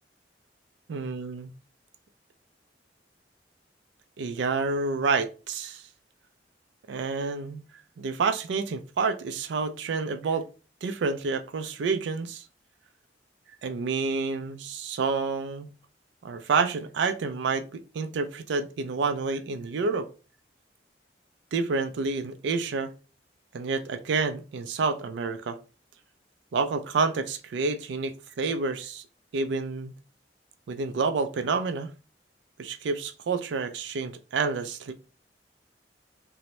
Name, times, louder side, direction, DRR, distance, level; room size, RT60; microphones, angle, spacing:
voice 1, 0.9-1.5 4.2-5.8 6.9-7.6 8.0-10.5 10.8-12.5 13.6-15.7 16.2-20.1 21.5-22.9 23.5-25.6 26.5-29.0 29.3-29.9 30.7-31.9 32.6-34.9, right 4 dB, 80° right, 0.4 m, -29 dB
2.6 x 2.0 x 3.0 m
head